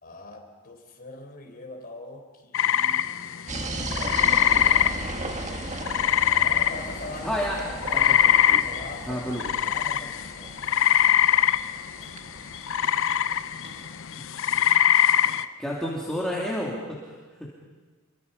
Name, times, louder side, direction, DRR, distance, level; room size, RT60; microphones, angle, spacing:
voice 1, 0.0-3.1 3.8-4.4 6.4-7.7 8.4-10.5, left 2 dB, 45° left, 3 dB, 4.1 m, -42 dB
sound 1, 2.5-7.2 7.5-15.5, left 10 dB, 65° left, 0.7 m, -23 dB
sound 2, 3.5-14.2, right 2 dB, 35° right, 1.7 m, -36 dB
sound 3, 7.0-7.3 7.9-8.3 8.9-9.2 9.7-10.0 10.6-10.9 12.0-12.2 12.8-13.1 13.6-13.9 14.5-14.7 15.2-15.5, right 1 dB, 55° right, 6.0 m, -52 dB
voice 2, 7.2-7.6 8.0-8.8 9.1-9.6 15.6-17.5, equal, 5° left, -5 dB, 3.0 m, -31 dB
29.0 x 23.5 x 5.6 m, 1.4 s
head